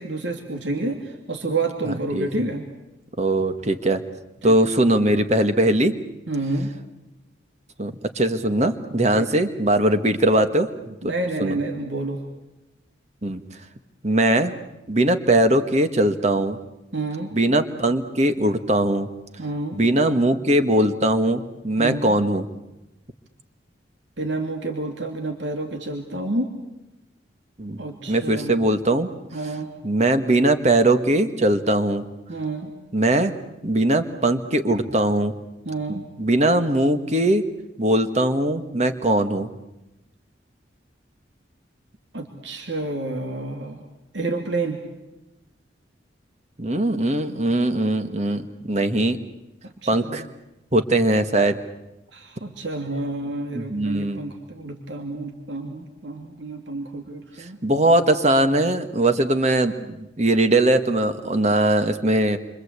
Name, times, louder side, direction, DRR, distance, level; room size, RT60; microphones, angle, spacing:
voice 1, 0.0-2.7 4.4-4.5 6.3-6.7 9.1-9.4 11.0-12.2 16.9-17.3 19.4-19.8 21.8-22.2 24.2-26.5 27.8-28.6 29.3-29.7 32.3-32.7 35.6-36.1 42.1-43.8 44.1-44.8 49.6-50.2 52.1-57.6, right 2 dB, 80° right, 4 dB, 2.9 m, -29 dB
voice 2, 1.9-2.3 3.2-4.0 4.4-5.9 7.8-10.9 11.4-11.6 13.2-13.4 14.0-14.5 14.9-16.6 17.3-19.1 19.7-22.5 27.6-27.8 28.1-29.1 29.8-32.1 32.9-33.3 33.6-35.3 35.9-37.5 37.8-39.5 46.6-49.2 49.9-50.3 50.7-51.6 53.5-54.2 57.6-62.4, right 1 dB, 35° right, 9 dB, 1.6 m, -20 dB
28.5 x 25.0 x 8.3 m, 0.97 s
head